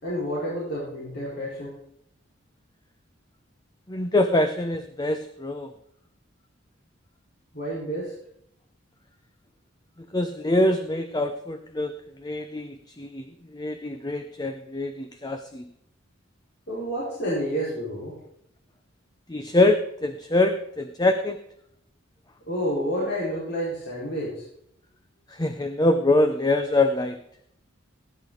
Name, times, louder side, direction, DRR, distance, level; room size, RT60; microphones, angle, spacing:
voice 1, 0.0-1.8 7.5-8.1 16.7-18.2 22.5-24.4, equal, 55° left, -7 dB, 4.8 m, -29 dB
voice 2, 3.9-5.7 10.1-11.9 12.2-13.2 13.5-15.7 19.3-21.4 25.3-27.2, left 2 dB, 20° left, 8 dB, 0.7 m, -24 dB
18.0 x 9.8 x 4.0 m, 0.73 s
head